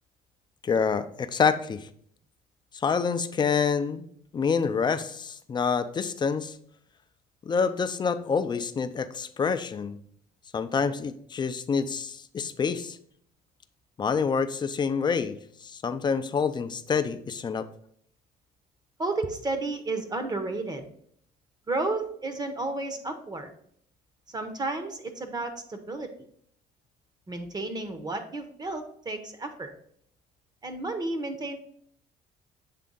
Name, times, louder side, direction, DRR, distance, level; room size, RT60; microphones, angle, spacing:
voice 1, 0.6-1.9 2.7-4.1 4.3-6.6 7.4-10.0 10.5-13.0 14.0-17.7, left 6 dB, 25° left, 11 dB, 0.4 m, -27 dB
voice 2, 19.0-20.8 21.7-23.5 24.3-26.1 27.3-29.7 30.6-31.6, right 2 dB, 25° right, 7 dB, 0.8 m, -32 dB
7.4 x 3.4 x 3.9 m, 0.65 s
cardioid pair, 110°, 17 cm